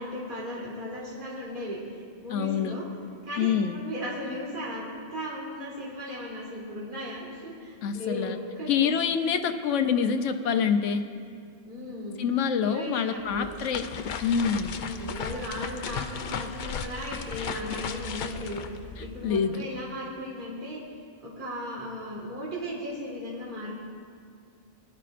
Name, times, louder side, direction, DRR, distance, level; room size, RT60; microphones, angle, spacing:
voice 1, 0.0-1.8 2.2-2.8 3.2-4.9 5.1-8.9 11.7-12.2 12.6-13.5 14.8-20.8 21.2-23.8, equal, 45° right, -6 dB, 2.1 m, -36 dB
voice 2, 2.3-2.8 3.4-3.8 7.8-8.4 8.7-11.0 12.2-13.8 14.2-14.7 19.0-19.7, left 7 dB, 85° left, 8 dB, 1.0 m, -26 dB
sound 1, 13.2-19.6, left 6 dB, 55° left, 0.5 m, -36 dB
19.5 x 11.5 x 2.5 m, 2.2 s
omnidirectional pair, 1.2 m